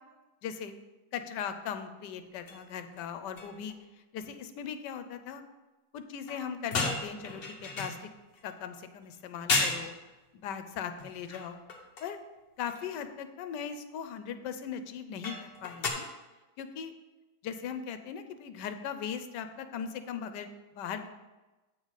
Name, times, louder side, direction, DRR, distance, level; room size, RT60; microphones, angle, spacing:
voice 1, 0.4-0.7 1.1-3.7 4.1-5.4 5.9-8.1 8.4-10.0 10.3-11.6 12.0-12.2 12.6-16.1 16.6-16.9 17.4-20.5 20.7-21.1, left 7 dB, 80° left, 9 dB, 1.2 m, -39 dB
sound 1, 2.5-2.6 3.0-3.1 3.4-3.7 6.3-8.5 9.1-9.2 9.5-9.9 11.0-12.2 12.6-12.8 15.2-15.9, left 3 dB, 40° left, 1.0 m, -34 dB
8.4 x 4.0 x 6.3 m, 1.1 s
omnidirectional pair, 1.9 m